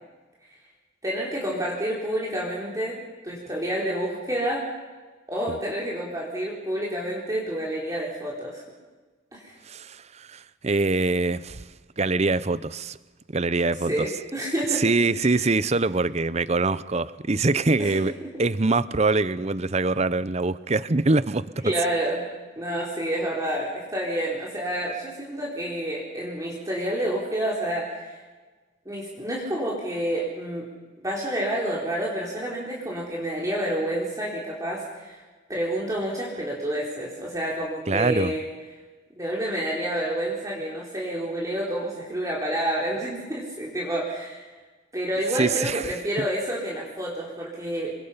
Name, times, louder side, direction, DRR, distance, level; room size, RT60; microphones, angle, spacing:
voice 1, 1.0-4.7 5.3-8.6 9.3-9.5 13.9-14.8 15.2-15.5 17.8-18.0 21.6-22.2 22.6-28.2 28.9-30.7 31.0-35.2 35.5-38.4 39.2-44.5 44.9-47.9, right 1 dB, 15° right, -4 dB, 4.0 m, -29 dB
voice 2, 9.7-11.6 12.0-13.0 13.3-14.1 14.7-18.1 18.4-21.6 37.9-38.3 45.4-45.9, right 3 dB, 35° right, 16 dB, 0.7 m, -24 dB
28.5 x 23.0 x 5.7 m, 1.3 s
head